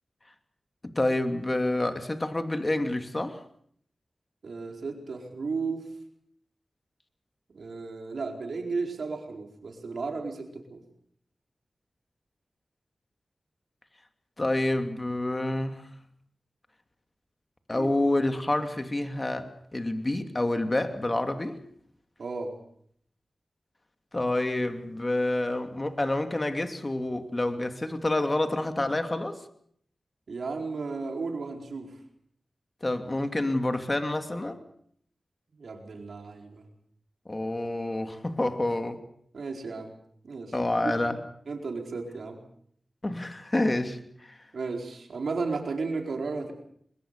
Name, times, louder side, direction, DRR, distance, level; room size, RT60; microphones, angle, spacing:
voice 1, 0.8-3.4 14.4-15.9 17.7-21.6 24.1-29.4 32.8-34.6 37.3-39.0 40.5-41.2 43.0-44.4, left 1 dB, 35° left, 7 dB, 2.8 m, -28 dB
voice 2, 4.4-5.9 7.5-10.8 17.7-17.9 22.2-22.5 30.3-31.9 35.6-36.6 39.3-39.9 40.2-40.5 40.8-41.0 41.5-42.4 44.5-46.5, right 4 dB, 80° right, 3 dB, 4.4 m, -34 dB
23.0 x 21.5 x 6.8 m, 0.65 s
cardioid pair, 45°, 0 cm